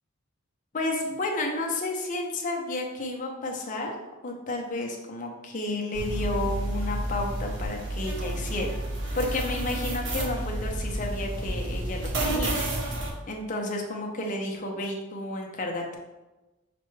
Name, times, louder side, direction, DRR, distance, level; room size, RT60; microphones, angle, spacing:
voice 1, 0.7-3.9 4.2-8.7 9.1-12.5 13.3-16.0, left 2 dB, 40° left, 1 dB, 0.6 m, -31 dB
sound 1, 5.9-13.1, right 1 dB, 60° right, 0.8 m, -30 dB
5.8 x 2.2 x 3.1 m, 1.1 s
head